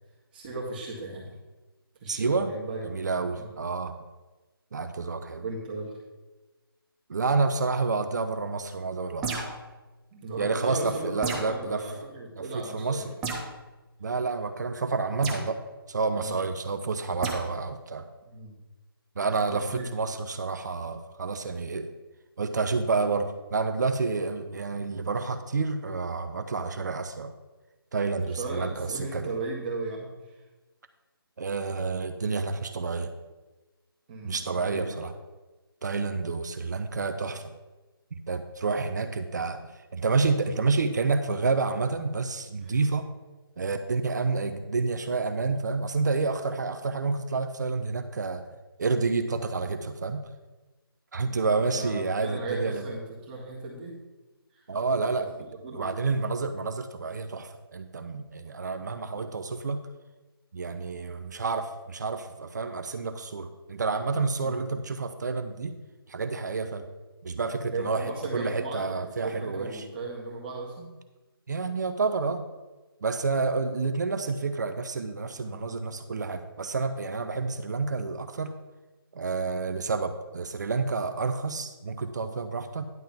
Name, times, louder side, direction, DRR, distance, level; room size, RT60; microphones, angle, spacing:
voice 1, 0.3-1.3 2.0-2.9 3.3-3.5 5.4-5.9 10.1-13.3 16.2-16.4 18.3-18.5 19.5-19.9 28.3-30.3 34.1-35.0 42.6-43.0 51.2-51.3 51.7-54.0 54.5-54.7 55.4-56.1 64.3-64.6 67.7-70.9 75.4-75.6, right 3 dB, 25° right, -4 dB, 1.8 m, -36 dB
voice 2, 2.1-2.5 2.8-4.0 4.7-5.5 7.1-9.4 10.4-11.8 12.4-12.5 12.7-13.0 14.0-15.6 15.9-18.1 19.2-19.6 19.9-21.9 22.4-27.3 27.9-29.3 31.4-33.1 34.2-35.1 35.8-37.5 38.1-39.6 39.9-43.1 43.6-48.4 48.8-50.2 51.1-52.9 54.7-55.3 55.7-59.8 60.5-65.8 66.1-66.8 67.2-69.8 71.5-72.4 73.0-78.5 79.1-82.9, right 4 dB, 45° right, 8 dB, 0.7 m, -29 dB
sound 1, 9.2-9.7 11.2-11.6 13.2-13.5 15.2-15.5 17.2-17.4, right 4 dB, 5° right, 0.3 m, -32 dB
10.5 x 3.7 x 7.0 m, 1.2 s
figure-of-eight pair, 160°, 13 cm